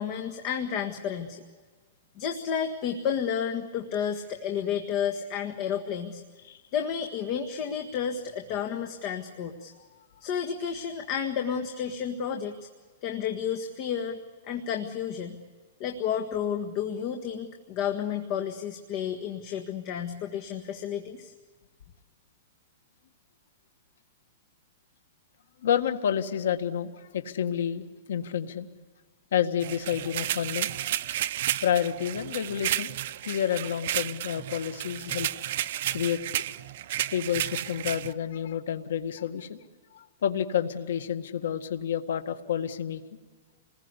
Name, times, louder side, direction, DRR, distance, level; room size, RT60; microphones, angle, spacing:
voice 1, 0.0-1.4 2.2-6.2 6.7-9.7 10.2-12.7 13.0-14.2 14.5-15.4 15.8-21.3, left 8 dB, 35° left, 4 dB, 1.6 m, -31 dB
voice 2, 25.6-28.7 29.3-30.7 31.6-32.9 33.2-35.3 35.9-36.2 37.0-39.6 39.9-43.0, left 9 dB, 80° left, 8 dB, 1.7 m, -29 dB
sound 1, 29.6-38.1, right 13 dB, 55° right, 0.7 m, -32 dB
28.0 x 20.5 x 8.2 m, 1.4 s
hypercardioid pair, 160°, 0 cm